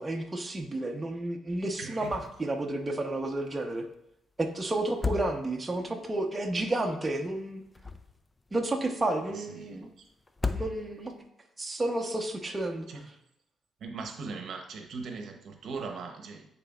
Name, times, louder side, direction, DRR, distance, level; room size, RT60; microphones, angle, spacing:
voice 1, 0.0-3.8 4.4-7.6 8.5-9.9 10.5-11.1 11.6-12.9, right 2 dB, 20° right, 3 dB, 0.9 m, -31 dB
voice 2, 1.8-2.1 9.3-9.9 12.9-13.0 13.8-16.5, right 4 dB, 65° right, 4 dB, 0.9 m, -39 dB
sound 1, 2.0-2.5 2.8-2.9 4.8-5.8 7.5-8.4 10.3-11.2, left 4 dB, 20° left, 0.4 m, -35 dB
9.9 x 4.3 x 2.5 m, 0.80 s
cardioid pair, 90°, 0 cm